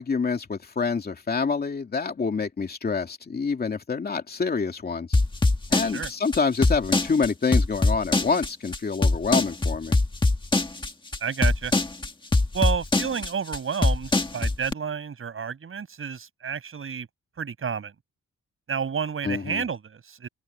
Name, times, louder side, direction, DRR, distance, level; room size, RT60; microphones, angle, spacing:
voice 1, 0.0-5.2 5.7-10.0 19.2-19.6, left 5 dB, 30° left, 2.6 m, -27 dB
sound 1, 5.1-14.7, left 2 dB, 15° left, 1.7 m, -22 dB
voice 2, 11.2-11.7 12.5-17.1 17.4-17.9 18.7-20.3, right 6 dB, 45° right, 6.4 m, -30 dB
open air
wide cardioid pair, 155°, 30 cm